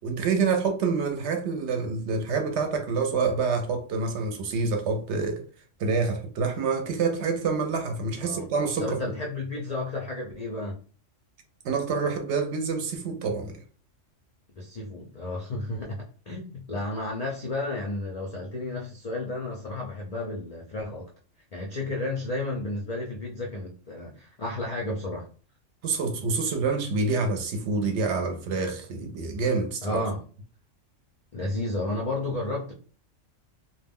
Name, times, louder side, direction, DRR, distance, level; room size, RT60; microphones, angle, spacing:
voice 1, 0.0-5.4 5.8-9.1 11.6-13.6 25.8-30.0, right 4 dB, 70° right, 0.8 m, -27 dB
voice 2, 8.8-10.8 14.6-21.1 21.5-25.3 29.8-30.2 31.3-32.7, left 2 dB, 65° left, 0.4 m, -32 dB
2.2 x 2.1 x 3.4 m
omnidirectional pair, 1.3 m